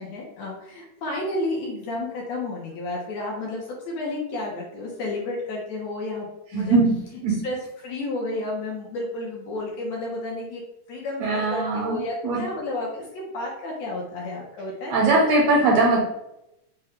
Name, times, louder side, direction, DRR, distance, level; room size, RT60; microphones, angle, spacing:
voice 1, 0.0-6.3 6.5-6.8 7.3-10.6 10.9-15.1, left 2 dB, 70° left, -2 dB, 1.8 m, -31 dB
voice 2, 6.5-6.9 7.2-7.4 11.2-12.4 14.9-16.0, right 3 dB, 70° right, -2 dB, 1.8 m, -20 dB
5.7 x 2.2 x 3.5 m, 0.86 s
omnidirectional pair, 3.6 m